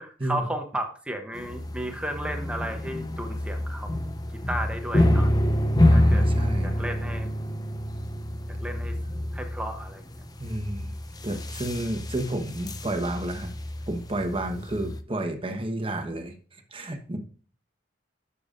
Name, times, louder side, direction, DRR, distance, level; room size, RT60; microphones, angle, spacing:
voice 1, 0.0-4.2 4.5-5.3 5.9-6.3 6.6-7.3 8.6-9.0 9.3-10.2, right 1 dB, 5° right, 5 dB, 0.8 m, -34 dB
sound 1, 1.3-15.0, left 1 dB, 20° left, 0.6 m, -27 dB
voice 2, 5.8-6.7 10.4-10.9 11.2-13.5 13.9-16.3 16.7-17.2, right 1 dB, 30° right, 5 dB, 1.2 m, -31 dB
11.5 x 6.9 x 2.6 m, 0.41 s
head